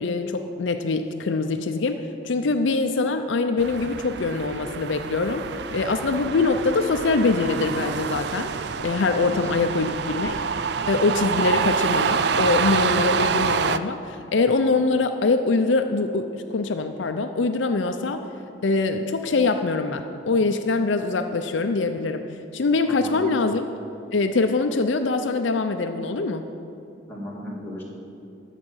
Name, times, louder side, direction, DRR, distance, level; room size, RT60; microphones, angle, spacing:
voice 1, 0.0-5.5 5.7-8.5 8.8-10.4 10.9-18.2 18.6-22.2 22.5-23.6 24.1-26.4, left 3 dB, 70° left, 7 dB, 0.5 m, -23 dB
sound 1, 3.6-13.8, right 6 dB, 55° right, 0.4 m, -27 dB
voice 2, 9.2-9.5 22.8-23.3 27.1-27.8, left 1 dB, 10° left, -5 dB, 2.0 m, -36 dB
13.0 x 4.9 x 8.9 m, 2.7 s
head